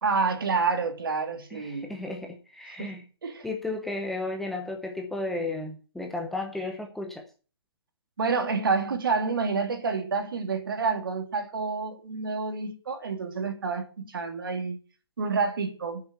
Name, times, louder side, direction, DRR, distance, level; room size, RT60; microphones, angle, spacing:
voice 1, 0.0-2.0 2.8-2.9 3.2-3.5 8.2-14.8 15.2-16.0, right 4 dB, 55° right, 2.6 m, -28 dB
voice 2, 1.5-3.0 3.4-7.2, left 2 dB, ahead, 0.6 m, -34 dB
9.3 x 6.8 x 7.8 m
hypercardioid pair, 160°, 14 cm